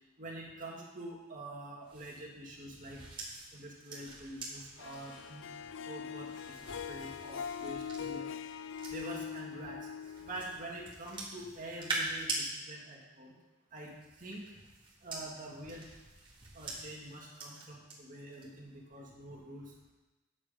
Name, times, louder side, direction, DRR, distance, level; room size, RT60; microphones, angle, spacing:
voice 1, 0.2-3.0 3.5-5.5 5.8-6.6 6.9-8.3 8.9-9.9 10.2-13.3 13.7-13.9 14.2-14.5 15.0-15.9 16.5-19.7, right 1 dB, 40° right, -2 dB, 2.0 m, -46 dB
sound 1, 1.9-9.4 10.0-12.5 13.7-17.9 18.3-18.7, right 2 dB, 25° right, 1.9 m, -44 dB
Harp, 4.8-11.1, left 7 dB, 65° left, 0.4 m, -42 dB
9.6 x 7.4 x 5.1 m, 1.1 s
head